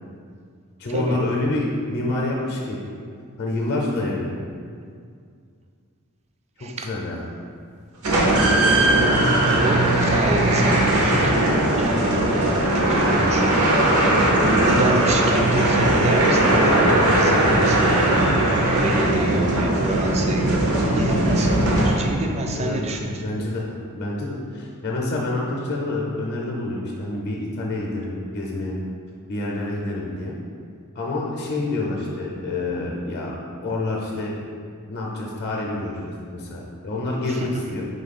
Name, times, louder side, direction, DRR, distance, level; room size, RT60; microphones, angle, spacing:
voice 1, 0.8-2.8 3.4-4.3 6.6-7.2 22.5-22.9 23.2-23.7 23.9-28.8 29.3-30.4 30.9-33.3 33.6-34.3 34.9-37.9, left 2 dB, 50° left, -1 dB, 0.6 m, -27 dB
voice 2, 6.6-6.9 8.2-13.7 14.1-18.4 18.8-21.5 21.8-23.2 29.4-29.5 37.3-37.5, right 2 dB, 30° right, 2 dB, 0.3 m, -27 dB
sound 1, 8.0-22.3, right 1 dB, 75° right, 0.7 m, -19 dB
3.8 x 3.0 x 4.2 m, 2.2 s
head